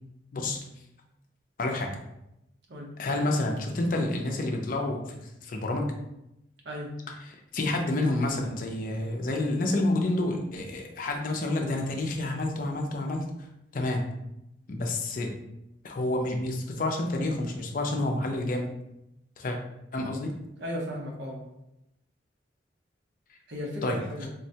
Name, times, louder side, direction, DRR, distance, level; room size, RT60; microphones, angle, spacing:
voice 1, 1.6-1.9 3.0-5.9 7.3-13.5 13.7-14.0 14.7-15.3 15.8-18.7 19.4-19.6 19.9-20.3 23.8-24.0, left 2 dB, 45° left, 2 dB, 0.4 m, -29 dB
voice 2, 20.6-21.4 23.5-24.3, equal, 70° right, -1 dB, 0.8 m, -35 dB
3.6 x 2.1 x 2.7 m, 0.86 s
head